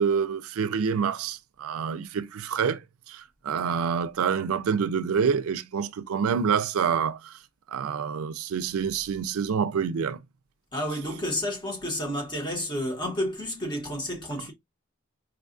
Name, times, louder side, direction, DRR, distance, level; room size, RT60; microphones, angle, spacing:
voice 1, 0.0-2.8 3.1-7.3 7.7-10.2, right 6 dB, 80° right, 0.4 m, -27 dB
voice 2, 10.7-14.5, equal, 20° left, 1.0 m, -31 dB
4.7 x 2.4 x 2.4 m
head